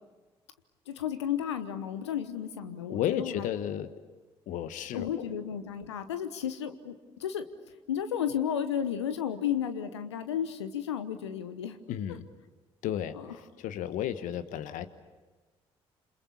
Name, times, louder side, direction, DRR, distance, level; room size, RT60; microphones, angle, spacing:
voice 1, 0.9-3.5 4.9-7.4 7.9-11.8, left 9 dB, 85° left, 10 dB, 1.0 m, -33 dB
voice 2, 2.9-3.9 4.5-5.3 11.9-12.3 12.8-14.9, left 10 dB, 65° left, 12 dB, 1.3 m, -33 dB
28.0 x 26.5 x 7.1 m, 1.3 s
figure-of-eight pair, 45°, 14 cm